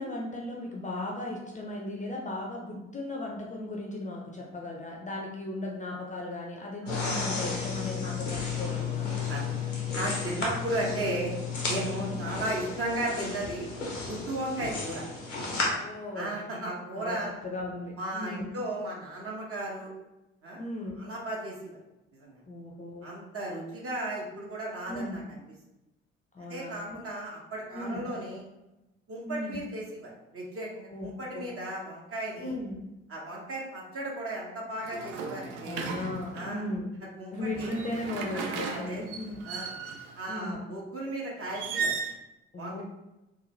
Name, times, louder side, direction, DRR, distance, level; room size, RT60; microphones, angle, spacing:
voice 1, 0.0-9.1 11.9-12.2 15.6-16.3 17.0-17.2 17.4-18.5 20.6-21.0 22.5-23.1 24.9-25.2 26.3-27.0 27.7-28.1 29.3-29.6 30.9-31.5 32.4-32.8 35.6-36.9 37.3-39.4 40.3-40.6 42.5-42.8, left 2 dB, 20° left, -1 dB, 0.6 m, -36 dB
sound 1, 6.9-15.7, left 5 dB, 85° left, 0.7 m, -33 dB
voice 2, 9.3-9.6 9.9-11.3 11.7-13.7 14.0-15.0 16.1-17.3 18.0-19.9 20.4-20.6 21.0-21.8 22.1-22.4 23.0-25.4 26.4-28.4 29.1-32.6 33.1-35.8 36.3-36.7 37.2-37.7 38.6-39.0 39.4-39.7 40.1-41.9 42.6-42.8, right 1 dB, 40° right, -3 dB, 1.1 m, -35 dB
sound 2, 34.8-36.5 37.4-40.2 41.5-42.2, right 5 dB, 65° right, 0.5 m, -36 dB
3.7 x 2.3 x 3.1 m, 0.96 s
figure-of-eight pair, 45°, 35 cm